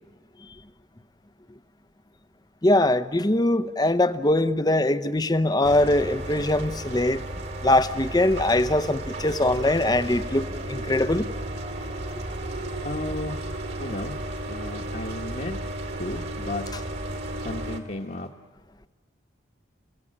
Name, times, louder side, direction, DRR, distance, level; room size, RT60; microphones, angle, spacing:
voice 1, 2.6-7.2 7.6-11.3, left 1 dB, 20° left, 0.7 m, -22 dB
sound 1, 5.6-17.8, right 1 dB, 55° right, 2.4 m, -34 dB
voice 2, 12.8-13.5 13.8-14.2 14.5-15.6 16.0-16.6 17.4-18.3, left 2 dB, 45° left, 1.3 m, -33 dB
30.0 x 17.0 x 8.8 m
head